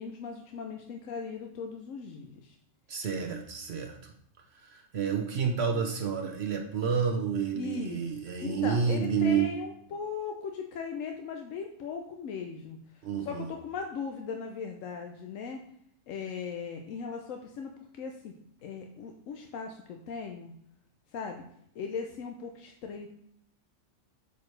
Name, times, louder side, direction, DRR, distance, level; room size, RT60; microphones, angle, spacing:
voice 1, 0.0-2.6 7.5-12.8 13.2-15.6 16.1-17.7 18.0-18.3 18.6-20.5 21.1-21.4 21.7-23.1, left 5 dB, 90° left, 3 dB, 1.1 m, -38 dB
voice 2, 2.9-4.1 4.6-9.5 13.0-13.5, right 6 dB, 60° right, 3 dB, 1.0 m, -29 dB
8.1 x 4.6 x 3.2 m, 0.71 s
omnidirectional pair, 1.3 m